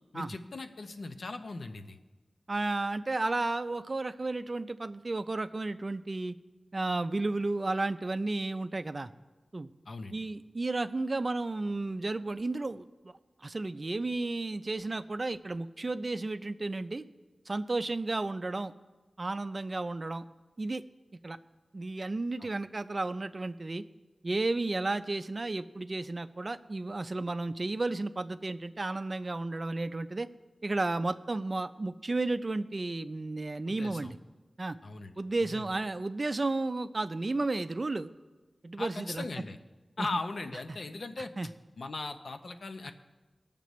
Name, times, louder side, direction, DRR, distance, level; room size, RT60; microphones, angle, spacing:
voice 1, 0.1-2.0 9.9-10.2 22.4-22.5 33.6-34.1 34.8-35.2 35.5-35.7 38.8-39.6 40.0-41.3 41.8-42.9, left 3 dB, 70° left, 7 dB, 0.7 m, -38 dB
voice 2, 2.5-6.3 6.7-9.1 9.5-9.7 10.1-13.1 13.4-17.0 17.5-18.7 19.2-20.2 20.6-20.8 21.2-21.4 21.7-23.8 24.2-30.3 30.6-34.2 34.6-34.8 35.2-38.1 38.6-39.2 40.0-40.1 41.4-41.5, right 2 dB, 40° right, 11 dB, 0.4 m, -33 dB
20.0 x 6.7 x 3.1 m, 1.2 s
wide cardioid pair, 90°, 0 cm